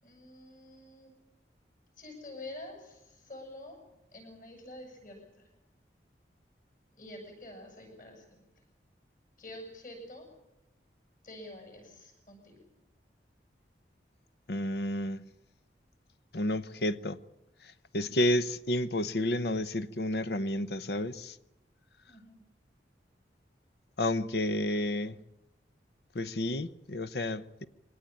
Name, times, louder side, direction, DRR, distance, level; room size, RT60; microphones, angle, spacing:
voice 1, 0.0-1.1 2.0-3.8 4.1-5.5 6.9-8.5 9.4-10.3 11.2-12.6 17.9-18.2 22.1-22.4, left 1 dB, 50° left, 7.7 m, -47 dB
voice 2, 14.5-15.2 16.3-17.2 17.9-21.4 24.0-25.2 26.1-27.7, left 1 dB, 70° left, 0.9 m, -31 dB
24.5 x 18.5 x 8.6 m
head